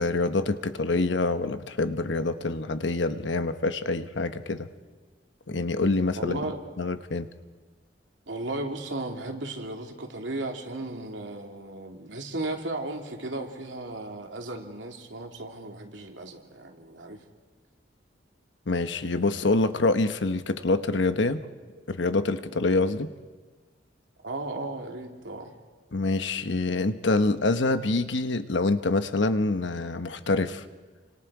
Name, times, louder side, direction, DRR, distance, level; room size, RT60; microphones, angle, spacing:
voice 1, 0.0-4.7 5.5-6.5 6.8-7.3 18.7-21.4 21.9-23.1 25.9-30.6, left 2 dB, 80° left, 10 dB, 1.1 m, -26 dB
voice 2, 6.2-6.6 8.3-17.2 24.2-25.5, right 2 dB, 90° right, 2 dB, 2.7 m, -35 dB
30.0 x 25.5 x 4.9 m, 1.4 s
head